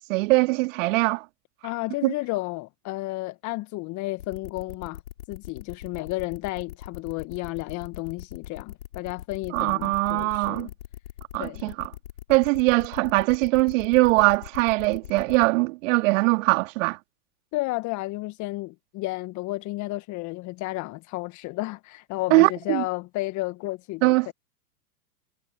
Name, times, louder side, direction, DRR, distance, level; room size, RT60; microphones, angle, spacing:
voice 1, 0.1-1.2 2.0-2.1 9.5-10.7 11.3-11.9 12.3-17.0 22.3-22.8 24.0-24.3, right 23 dB, 55° right, 3.1 m, -21 dB
voice 2, 1.6-5.0 5.3-10.7 11.4-11.7 17.5-24.3, left 20 dB, 40° left, 1.7 m, -32 dB
sound 1, 4.2-15.5, left 12 dB, 65° left, 6.7 m, -41 dB
hypercardioid pair, 100°, 46 cm